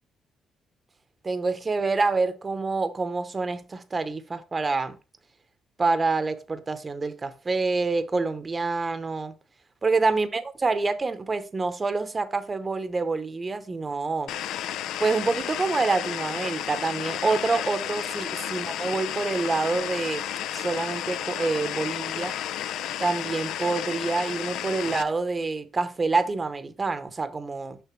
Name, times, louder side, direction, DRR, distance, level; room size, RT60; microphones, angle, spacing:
voice 1, 1.2-5.0 5.8-9.3 9.8-14.3 15.0-20.2 20.5-22.3 23.0-27.8, right 3 dB, 30° right, 0.8 m, -27 dB
sound 1, 14.3-25.0, left 11 dB, 85° left, 0.4 m, -32 dB
6.7 x 5.7 x 3.1 m
cardioid pair, 90°, 0 cm